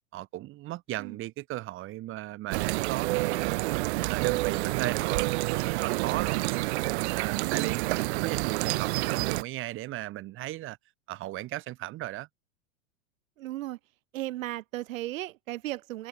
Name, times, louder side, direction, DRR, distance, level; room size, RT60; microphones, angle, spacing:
voice 1, 0.1-3.7 4.0-6.4 6.8-7.8 8.1-10.8 11.1-12.3, right 16 dB, 30° right, 1.9 m, -36 dB
sound 1, 2.5-9.4, right 22 dB, 55° right, 0.7 m, -28 dB
voice 2, 7.4-8.0 13.4-13.8 14.1-16.1, right 16 dB, 70° right, 6.3 m, -36 dB
supercardioid pair, 155°, 41 cm